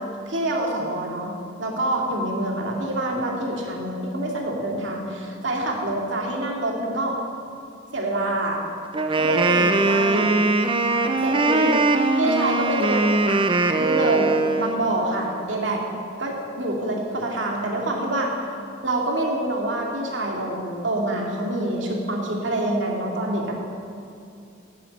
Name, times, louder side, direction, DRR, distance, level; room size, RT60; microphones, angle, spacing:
voice 1, 0.3-1.3 1.6-7.2 7.9-8.6 9.2-10.3 11.2-13.5 13.8-15.8 16.2-18.3 18.8-23.6, right 1 dB, 70° right, -1 dB, 2.4 m, -26 dB
Wind instrument woodwind instrument, 8.9-14.8, right 3 dB, 25° right, 0.6 m, -21 dB
11.0 x 9.4 x 8.5 m, 2.5 s
head